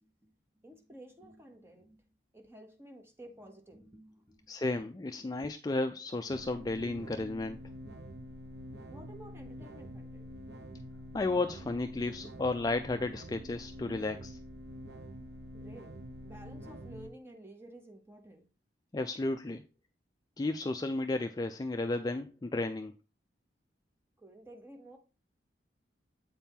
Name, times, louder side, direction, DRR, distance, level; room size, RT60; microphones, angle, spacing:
voice 1, 0.0-0.3 0.6-2.0 2.3-4.5 5.2-5.3 8.7-10.3 15.5-16.0 16.2-18.5 24.2-25.0, right 1 dB, 15° right, 0.9 m, -52 dB
voice 2, 4.5-7.6 11.1-14.4 18.9-19.6 20.4-22.9, left 2 dB, 20° left, 0.3 m, -33 dB
sound 1, 6.3-17.1, equal, 65° right, 0.7 m, -46 dB
8.0 x 4.3 x 3.6 m
head